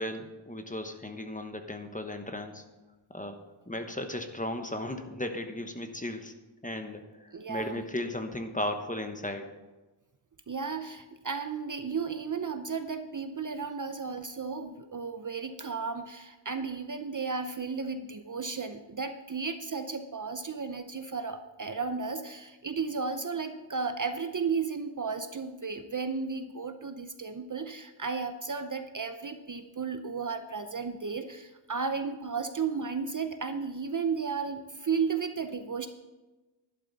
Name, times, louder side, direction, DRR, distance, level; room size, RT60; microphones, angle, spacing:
voice 1, 0.0-2.6 3.1-3.4 3.7-6.3 6.6-9.5, left 1 dB, 15° left, 6 dB, 1.1 m, -36 dB
voice 2, 7.3-7.8 10.5-35.9, right 5 dB, 40° right, 8 dB, 0.7 m, -34 dB
11.5 x 11.5 x 4.1 m, 1.1 s
wide cardioid pair, 90°, 49 cm